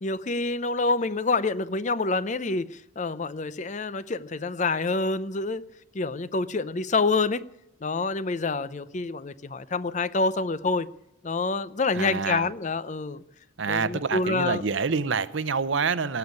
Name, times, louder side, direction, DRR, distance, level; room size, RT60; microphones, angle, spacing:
voice 1, 0.0-5.6 5.9-7.4 7.8-10.9 11.2-13.2 13.7-14.6, left 3 dB, 35° left, 0.6 m, -27 dB
voice 2, 11.9-12.5 13.6-16.2, right 5 dB, 70° right, 0.8 m, -27 dB
18.5 x 7.0 x 9.4 m
head